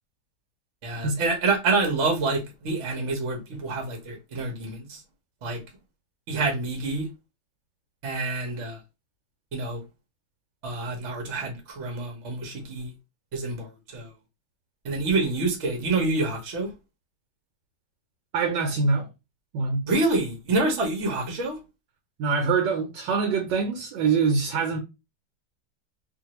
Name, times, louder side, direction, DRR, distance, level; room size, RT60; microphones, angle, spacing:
voice 1, 0.8-5.0 5.4-5.6 6.3-7.1 8.0-8.8 9.5-9.8 10.6-12.9 13.3-14.1 14.8-16.7 19.9-21.6, right 3 dB, 50° right, 1.0 m, -27 dB
voice 2, 18.3-19.1 19.5-19.8 22.2-24.8, right 4 dB, 90° right, 1.3 m, -24 dB
2.8 x 2.5 x 2.9 m
omnidirectional pair, 1.9 m